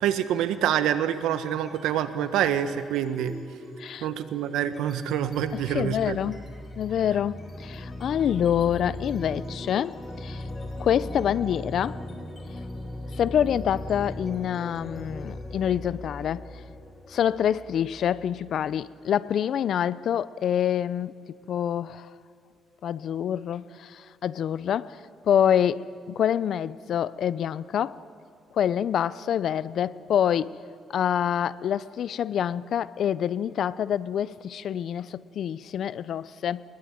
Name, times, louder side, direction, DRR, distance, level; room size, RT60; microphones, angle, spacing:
voice 1, 0.0-3.3 4.0-6.2, right 10 dB, 90° right, 1.3 m, -26 dB
sound 1, 1.4-1.9 2.2-18.8, left 1 dB, 30° left, 5.6 m, -39 dB
voice 2, 5.7-6.4 6.8-10.4 10.8-12.0 13.2-16.4 17.1-21.1 21.5-22.1 22.8-25.0 25.3-28.0 28.5-30.6 30.9-36.6, left 9 dB, 65° left, 0.6 m, -26 dB
22.5 x 21.5 x 9.2 m
cardioid pair, 90°, 0 cm